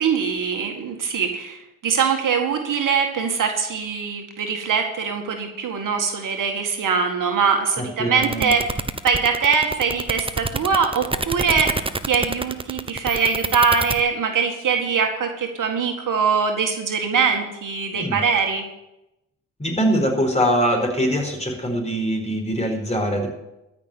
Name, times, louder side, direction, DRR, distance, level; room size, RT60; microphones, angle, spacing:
voice 1, 0.0-1.6 1.8-11.7 12.1-18.6, right 6 dB, 50° right, 3 dB, 2.0 m, -22 dB
voice 2, 7.8-8.5 17.9-18.2 19.6-23.3, equal, 15° left, 3 dB, 4.4 m, -23 dB
sound 1, 8.2-14.0, right 3 dB, 15° right, 0.9 m, -26 dB
13.5 x 6.1 x 9.5 m, 0.92 s
hypercardioid pair, 60°, 41 cm